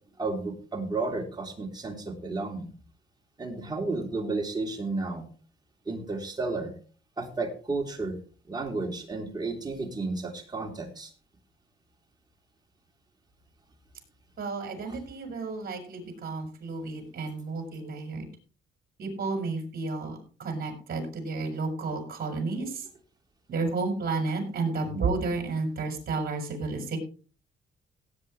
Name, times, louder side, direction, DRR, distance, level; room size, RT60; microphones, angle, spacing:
voice 1, 0.2-2.7 3.4-5.2 5.8-6.7 7.2-8.2 8.5-11.1 14.9-15.0 24.8-25.1, right 3 dB, 20° right, 1 dB, 3.5 m, -32 dB
voice 2, 14.4-18.2 19.0-22.8 23.5-27.0, right 3 dB, 50° right, 4 dB, 5.0 m, -32 dB
17.5 x 8.6 x 3.2 m, 0.38 s
cardioid pair, 90°, 20 cm